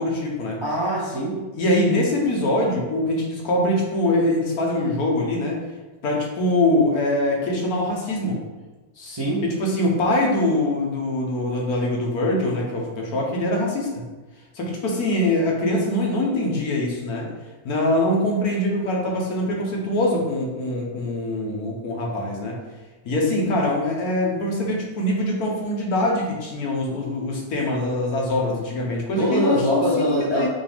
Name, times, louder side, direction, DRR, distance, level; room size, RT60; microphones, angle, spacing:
voice 1, 0.0-0.6 1.5-5.6 6.0-8.4 9.4-13.9 14.5-17.3 17.6-22.6 23.0-30.1 30.3-30.5, left 1 dB, 70° left, -2 dB, 1.4 m, -23 dB
voice 2, 0.6-1.4 8.9-9.4 29.2-30.5, equal, 30° right, -6 dB, 0.5 m, -23 dB
5.9 x 2.5 x 3.4 m, 1.2 s
omnidirectional pair, 1.7 m